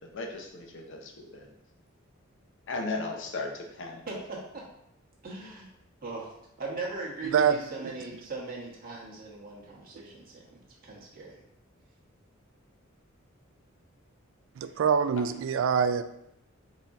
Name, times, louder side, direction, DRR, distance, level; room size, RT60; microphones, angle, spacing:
voice 1, 0.1-1.5 2.7-4.0, left 3 dB, 65° left, 2 dB, 0.7 m, -36 dB
voice 2, 4.1-4.4 5.2-5.7 6.0-6.3 6.6-11.4, right 3 dB, 45° right, -4 dB, 1.2 m, -39 dB
voice 3, 14.6-16.0, right 7 dB, 65° right, 10 dB, 0.3 m, -25 dB
4.0 x 4.0 x 2.4 m, 0.79 s
head